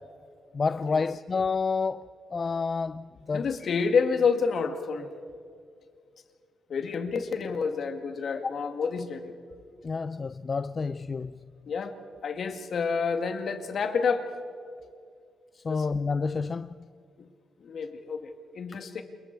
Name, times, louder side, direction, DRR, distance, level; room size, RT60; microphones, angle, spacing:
voice 1, 0.5-3.7 8.4-8.5 9.8-11.5 14.6-14.7 15.6-16.7, left 4 dB, 40° left, 0.5 m, -29 dB
voice 2, 3.3-5.1 6.7-9.4 11.7-12.0 12.2-14.3 15.7-15.9 17.2-17.3 17.6-19.0, left 5 dB, 60° left, 2.0 m, -29 dB
28.0 x 22.5 x 4.7 m
cardioid pair, 80°, 0 cm